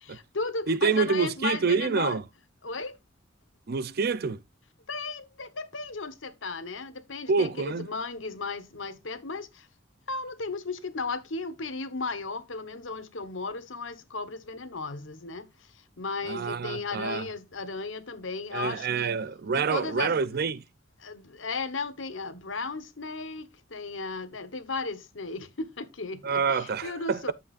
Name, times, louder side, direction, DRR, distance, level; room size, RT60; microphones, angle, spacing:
voice 1, 0.0-2.2 2.6-3.0 4.9-9.7 10.1-19.1 19.5-20.2 21.0-27.3, left 3 dB, 80° left, 1.3 m, -35 dB
voice 2, 0.7-2.2 3.7-4.4 7.3-7.9 16.3-17.3 18.5-20.6 26.2-27.3, right 5 dB, 55° right, 0.6 m, -27 dB
11.0 x 7.7 x 2.5 m
head